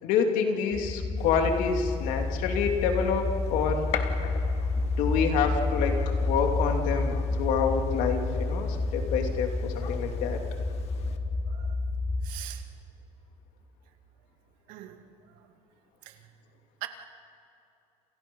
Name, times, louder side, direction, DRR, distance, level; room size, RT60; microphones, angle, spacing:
voice 1, 0.0-3.9 4.8-10.4, left 6 dB, 70° left, 3 dB, 2.9 m, -27 dB
sound 1, 0.7-12.3, left 3 dB, 15° left, 2.5 m, -29 dB
Gunshot gunfire, 1.2-11.2, left 9 dB, 50° left, 1.7 m, -43 dB
voice 2, 11.5-11.8 12.2-12.7 14.7-15.5 16.0-16.3 16.8-16.9, right 15 dB, 85° right, 6 dB, 2.3 m, -43 dB
29.0 x 29.0 x 5.5 m, 2.8 s
cardioid pair, 170°, 14 cm